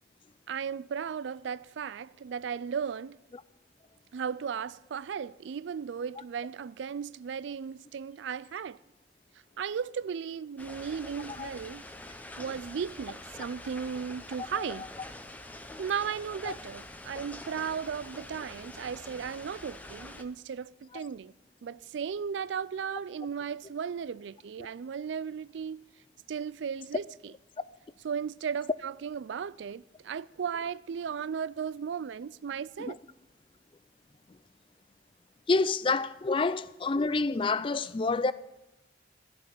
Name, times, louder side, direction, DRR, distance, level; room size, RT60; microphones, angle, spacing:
voice 1, 0.5-3.2 4.1-8.8 9.6-11.8 12.4-14.9 15.8-21.3 21.6-25.8 26.3-27.3 28.0-33.0 35.6-35.7, right 7 dB, 70° right, 0.3 m, -36 dB
sound 1, 10.6-20.2, left 1 dB, 10° left, 0.8 m, -45 dB
voice 2, 35.5-38.3, left 3 dB, 25° left, 0.4 m, -27 dB
14.0 x 6.1 x 8.5 m
head